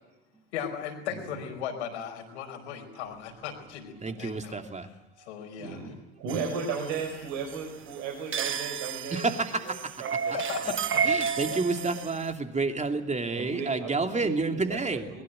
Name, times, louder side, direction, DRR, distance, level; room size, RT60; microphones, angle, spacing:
voice 1, 0.5-4.6 5.2-6.0 10.3-11.6, left 8 dB, 70° left, 3 dB, 5.0 m, -37 dB
voice 2, 4.0-4.9 9.1-9.9 10.2-10.4 10.6-10.7 11.0-15.1, right 3 dB, 20° right, 6 dB, 2.8 m, -29 dB
voice 3, 5.6-9.7 10.0-10.3 13.3-15.2, right 5 dB, 60° right, 1 dB, 5.1 m, -36 dB
sound 1, 6.3-12.3, right 6 dB, 35° right, 1.5 m, -32 dB
22.0 x 21.5 x 7.9 m, 0.95 s
figure-of-eight pair, 60°, 35 cm